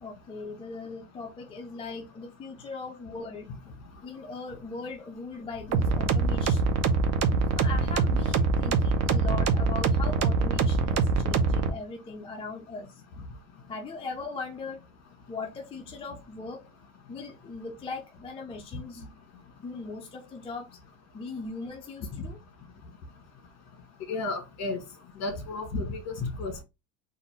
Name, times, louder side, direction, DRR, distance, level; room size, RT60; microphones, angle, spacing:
voice 1, 0.0-3.5 4.0-6.8 7.5-13.0 13.7-14.8 15.3-16.7 17.1-19.1 19.6-20.8 21.1-22.4, left 4 dB, 15° left, 0.4 m, -39 dB
sound 1, 5.7-11.7, right 4 dB, 40° right, 0.8 m, -24 dB
voice 2, 24.1-24.8 25.2-26.1 26.4-26.6, left 3 dB, 40° left, 1.7 m, -32 dB
4.1 x 2.6 x 4.3 m
cardioid pair, 145°, 40 cm